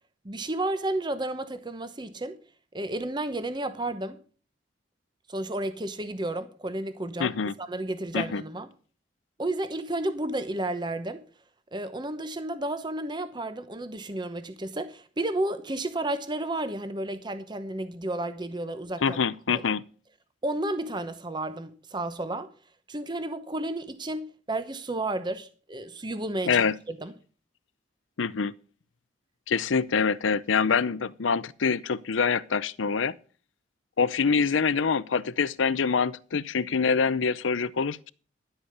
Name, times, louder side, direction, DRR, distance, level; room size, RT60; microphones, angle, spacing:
voice 1, 0.2-2.4 2.7-4.2 5.3-8.7 9.4-11.2 11.7-19.2 19.5-19.6 20.4-22.5 22.9-27.1, right 1 dB, 25° right, 0.9 m, -32 dB
voice 2, 7.2-7.5 8.1-8.4 19.0-19.8 26.4-26.8 28.2-28.5 29.5-33.1 34.0-38.1, left 5 dB, 85° left, 0.6 m, -25 dB
11.5 x 8.1 x 6.6 m
head